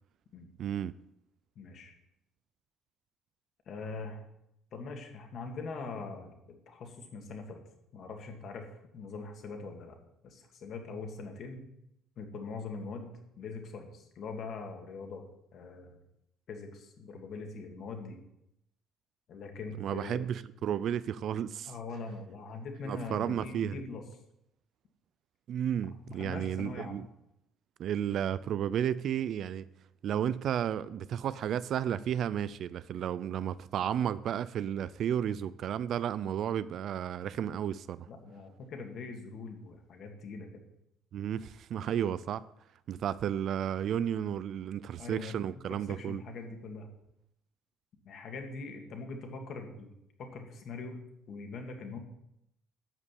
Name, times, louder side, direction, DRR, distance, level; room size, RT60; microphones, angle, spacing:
voice 1, 0.6-1.0 19.8-21.7 22.8-23.8 25.5-27.1 27.8-29.7 30.0-38.1 41.1-42.4 42.9-46.2, right 9 dB, 45° right, 0.4 m, -33 dB
voice 2, 1.6-2.0 3.7-4.2 4.7-7.6 7.9-10.0 10.2-11.6 12.2-13.1 13.4-15.3 15.5-16.0 16.5-18.2 19.3-20.2 21.7-24.0 26.1-27.0 38.1-40.5 45.0-45.3 45.7-46.9 48.0-49.9 50.2-51.0 51.3-52.0, left 4 dB, 45° left, 2.1 m, -42 dB
12.5 x 5.2 x 8.3 m
cardioid pair, 165°, 0 cm